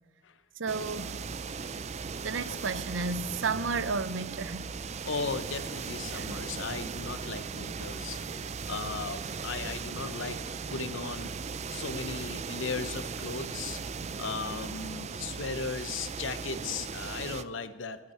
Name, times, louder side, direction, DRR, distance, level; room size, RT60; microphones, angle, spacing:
voice 1, 0.6-1.2 2.2-4.8 6.1-6.5 8.3-8.4, right 4 dB, 80° right, 0.6 m, -33 dB
sound 1, 0.7-17.4, right 5 dB, 35° right, 0.4 m, -38 dB
voice 2, 5.1-8.2 8.7-11.4 11.7-13.8 14.2-18.0, left 4 dB, 85° left, 0.8 m, -37 dB
16.5 x 12.0 x 4.4 m
head